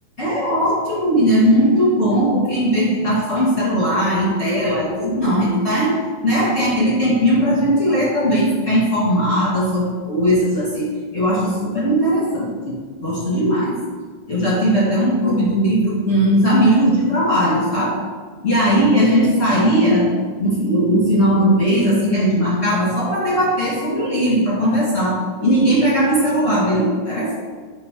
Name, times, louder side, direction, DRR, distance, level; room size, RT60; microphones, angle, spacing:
voice 1, 0.2-13.8 14.3-18.0 18.4-20.1 20.4-27.4, equal, 30° left, -7 dB, 1.5 m, -18 dB
11.5 x 4.6 x 6.7 m, 1.5 s
omnidirectional pair, 5.7 m